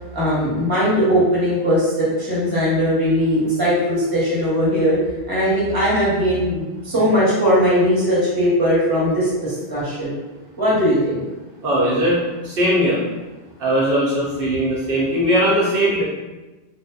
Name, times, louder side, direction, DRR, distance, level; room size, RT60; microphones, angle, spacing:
voice 1, 0.1-5.0 5.3-10.2 10.6-11.2, equal, 25° right, -8 dB, 0.9 m, -19 dB
voice 2, 11.6-12.2 12.4-13.0 13.6-16.0, equal, 70° right, -6 dB, 0.8 m, -19 dB
2.7 x 2.1 x 2.3 m, 1.1 s
omnidirectional pair, 1.1 m